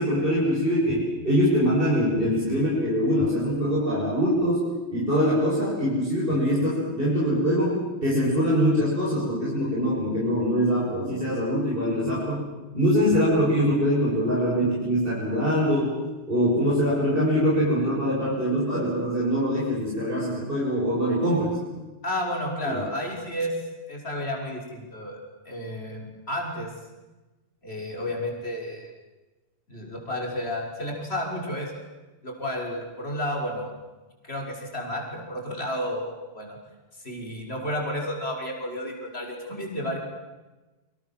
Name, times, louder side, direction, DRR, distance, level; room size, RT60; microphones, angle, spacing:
voice 1, 0.0-12.4 12.7-15.9 16.3-21.6 22.6-22.8, equal, 50° right, -6 dB, 7.3 m, -23 dB
voice 2, 22.0-23.5 23.9-25.2 25.4-26.7 27.6-28.9 29.7-31.8 32.2-33.7 34.2-36.6 37.0-40.0, equal, 60° left, 0 dB, 6.2 m, -31 dB
29.5 x 25.5 x 7.5 m, 1.1 s
omnidirectional pair, 1.2 m